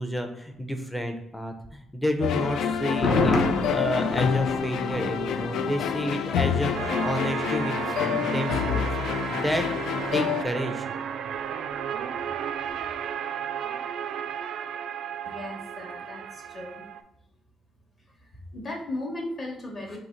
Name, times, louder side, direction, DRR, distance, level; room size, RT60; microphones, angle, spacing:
voice 1, 0.0-3.4 3.7-8.8 9.3-9.7 10.1-10.9, equal, 5° left, 5 dB, 0.5 m, -30 dB
sound 1, 2.2-10.4, left 8 dB, 80° left, 0.3 m, -28 dB
Thunder, 2.8-6.8 7.0-7.1, left 2 dB, 55° left, 0.8 m, -29 dB
sound 2, 6.7-17.0, right 8 dB, 70° right, 0.3 m, -33 dB
voice 2, 15.3-16.9 18.5-20.0, left 1 dB, 30° left, 1 dB, 0.9 m, -36 dB
3.9 x 2.8 x 4.3 m, 0.84 s
cardioid pair, 175°, 0 cm